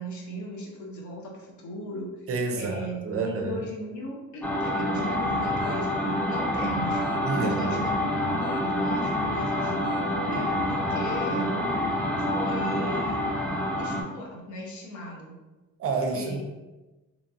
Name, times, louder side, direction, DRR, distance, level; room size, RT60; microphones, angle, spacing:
voice 1, 0.0-2.2 2.5-7.0 7.3-9.7 10.2-11.6 12.2-13.3 13.8-15.4 16.1-16.4, left 1 dB, 70° left, -2 dB, 0.8 m, -38 dB
voice 2, 2.3-3.6 7.2-7.9 15.8-16.4, right 4 dB, 50° right, 4 dB, 0.5 m, -29 dB
sound 1, 4.4-14.0, left 1 dB, 5° left, 0.4 m, -27 dB
sound 2, 5.6-5.9 7.0-7.4 8.4-8.8 9.8-10.2, left 1 dB, 35° left, 0.7 m, -47 dB
2.9 x 2.2 x 2.6 m, 1.1 s
cardioid pair, 90°, 30 cm